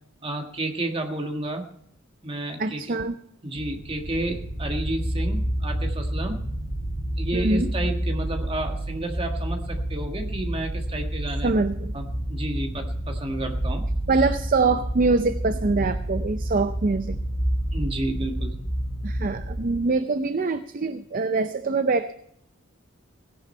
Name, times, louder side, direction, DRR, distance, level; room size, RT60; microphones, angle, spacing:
voice 1, 0.2-1.7 2.2-2.9 3.4-6.4 7.2-11.5 11.9-13.8 17.7-18.5, right 1 dB, 25° right, 3 dB, 1.6 m, -31 dB
voice 2, 2.6-3.2 7.3-7.7 11.4-11.9 14.1-17.2 19.0-22.1, right 3 dB, 45° right, 10 dB, 0.5 m, -24 dB
sound 1, 3.5-19.7, right 1 dB, 20° left, 5.1 m, -29 dB
17.0 x 10.5 x 4.3 m, 0.70 s
head